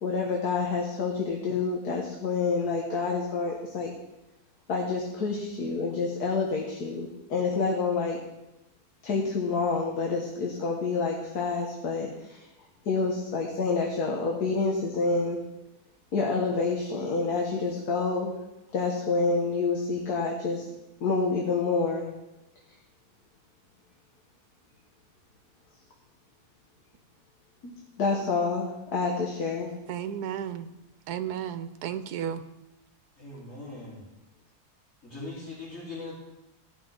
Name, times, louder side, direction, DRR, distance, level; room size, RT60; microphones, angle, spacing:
voice 1, 0.0-3.9 4.7-8.2 9.0-12.5 12.8-15.4 16.1-18.3 18.7-20.6 21.0-22.1 28.0-29.7, left 4 dB, 75° left, -1 dB, 1.7 m, -28 dB
voice 2, 29.9-30.7 31.1-32.4, right 9 dB, 80° right, 10 dB, 1.2 m, -33 dB
voice 3, 33.2-34.0 35.0-36.2, left 2 dB, 55° left, -9 dB, 4.2 m, -40 dB
16.5 x 6.0 x 3.8 m, 0.97 s
omnidirectional pair, 1.7 m